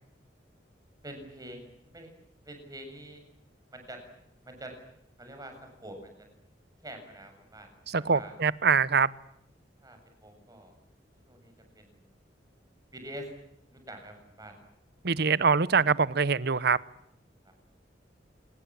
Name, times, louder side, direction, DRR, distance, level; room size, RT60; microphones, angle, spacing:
voice 1, 1.0-1.7 1.9-2.1 2.4-3.2 3.7-4.0 4.4-4.7 5.2-6.1 6.8-7.7 8.0-8.3 9.8-10.7 11.3-11.9 12.9-13.3 13.7-14.6 17.4-17.5, right 1 dB, 20° right, 7.4 m, -45 dB
voice 2, 7.9-9.1 15.0-16.8, right 5 dB, 60° right, 0.9 m, -24 dB
26.5 x 21.0 x 8.8 m
head